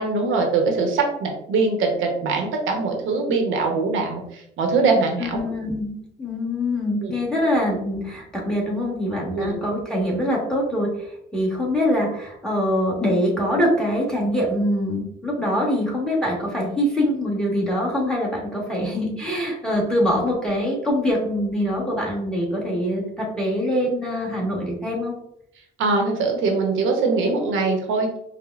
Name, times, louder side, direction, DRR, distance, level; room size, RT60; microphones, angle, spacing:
voice 1, 0.0-5.4 7.0-7.1 9.3-9.6 25.8-28.1, right 4 dB, 85° right, 2 dB, 0.9 m, -22 dB
voice 2, 5.2-25.1, equal, 5° left, -3 dB, 1.4 m, -24 dB
5.0 x 2.1 x 2.4 m, 0.75 s
cardioid pair, 90°, 20 cm